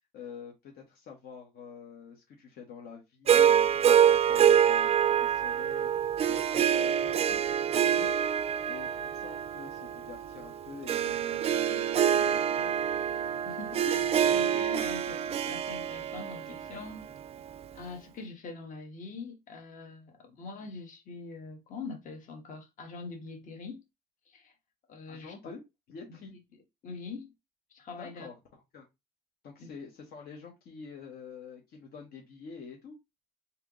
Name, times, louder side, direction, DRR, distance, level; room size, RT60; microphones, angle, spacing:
voice 1, 0.1-5.9 6.3-8.2 8.6-12.7 25.1-25.6 25.9-26.3 28.0-28.9 29.4-33.0, left 6 dB, 65° left, 1.1 m, -47 dB
Harp, 3.3-17.6, right 9 dB, 35° right, 0.4 m, -26 dB
voice 2, 13.4-17.1 17.7-23.8 24.3-24.5 24.9-25.3 26.8-27.3 27.7-28.3 29.6-29.7, left 4 dB, 50° left, 1.3 m, -43 dB
3.4 x 2.9 x 3.6 m
cardioid pair, 110°, 17 cm